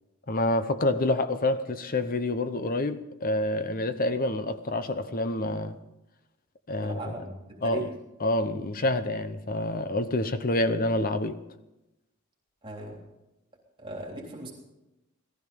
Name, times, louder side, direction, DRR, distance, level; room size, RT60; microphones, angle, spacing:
voice 1, 0.3-5.8 6.7-7.1 7.6-7.9 8.2-11.4, left 2 dB, 40° left, 0.9 m, -27 dB
voice 2, 6.8-7.9 12.6-13.0 13.8-14.5, right 2 dB, 25° right, 3.4 m, -38 dB
18.5 x 14.0 x 5.4 m
head